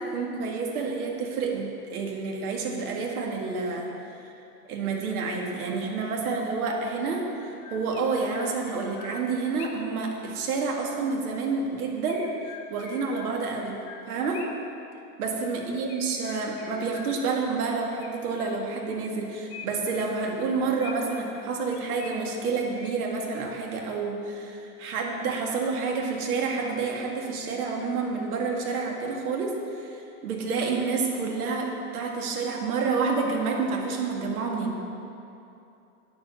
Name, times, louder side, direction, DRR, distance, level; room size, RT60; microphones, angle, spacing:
voice 1, 0.1-4.3 4.7-12.3 12.7-14.4 15.2-34.8, right 4 dB, 70° right, 0 dB, 2.1 m, -29 dB
Chirp tweet, 6.6-6.7 7.3-10.0 12.1-14.7 15.9-17.5 18.0-18.9 19.5-21.3 21.7-23.2, left 5 dB, 60° left, 2.4 m, -45 dB
9.3 x 7.4 x 7.0 m, 2.7 s
supercardioid pair, 145°, 47 cm